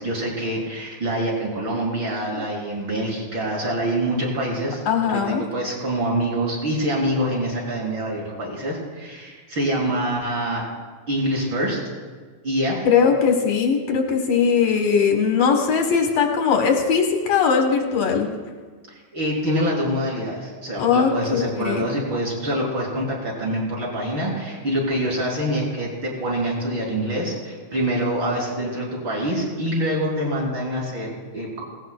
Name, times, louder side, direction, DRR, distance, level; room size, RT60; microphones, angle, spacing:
voice 1, 0.0-10.7 11.1-11.8 12.4-12.9 19.1-31.6, right 1 dB, 35° right, -4 dB, 3.8 m, -25 dB
voice 2, 4.9-5.4 12.8-18.3 20.8-21.8, left 6 dB, 65° left, 3 dB, 1.8 m, -20 dB
18.5 x 17.0 x 2.2 m, 1.5 s
omnidirectional pair, 3.9 m